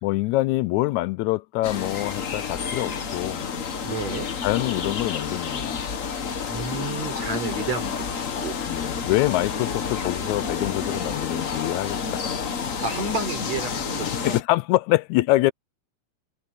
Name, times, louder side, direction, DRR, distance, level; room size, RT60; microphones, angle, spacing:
voice 1, 0.0-3.4 4.4-5.8 8.7-12.3 14.0-15.5, left 18 dB, 85° left, 1.9 m, -25 dB
sound 1, 1.6-14.4, left 6 dB, 65° left, 0.8 m, -30 dB
voice 2, 3.8-4.3 6.5-8.6 12.8-14.4, right 3 dB, 65° right, 6.0 m, -31 dB
omnidirectional pair, 3.3 m